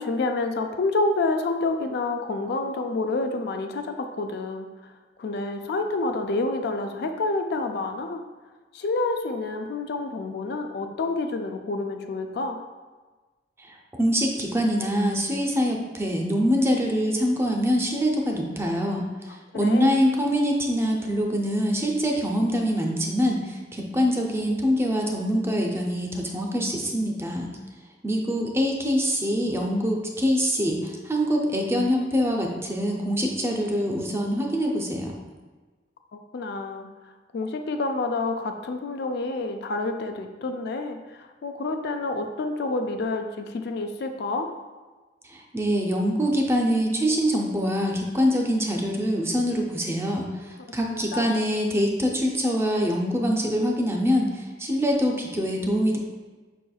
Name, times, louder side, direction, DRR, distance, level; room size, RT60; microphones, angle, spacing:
voice 1, 0.0-4.9 5.2-8.2 8.7-12.6 19.5-19.9 36.3-36.9 37.3-44.5 50.9-51.3, left 3 dB, 60° left, 6 dB, 0.3 m, -28 dB
voice 2, 13.6-19.0 19.5-27.5 28.0-35.1 45.3-56.0, equal, 15° right, 1 dB, 0.5 m, -24 dB
5.4 x 4.2 x 2.3 m, 1.3 s
head